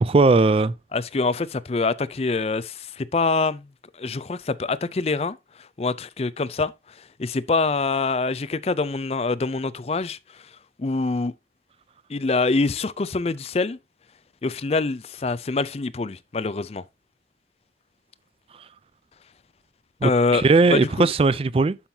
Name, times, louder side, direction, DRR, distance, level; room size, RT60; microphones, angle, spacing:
voice 1, 0.0-0.7 20.0-21.8, right 3 dB, 30° right, 0.3 m, -18 dB
voice 2, 0.9-3.6 4.0-5.4 5.8-6.7 7.2-10.2 10.8-11.3 12.1-13.8 14.4-16.8 20.0-21.1, left 3 dB, 35° left, 0.4 m, -25 dB
11.5 x 5.7 x 2.8 m
head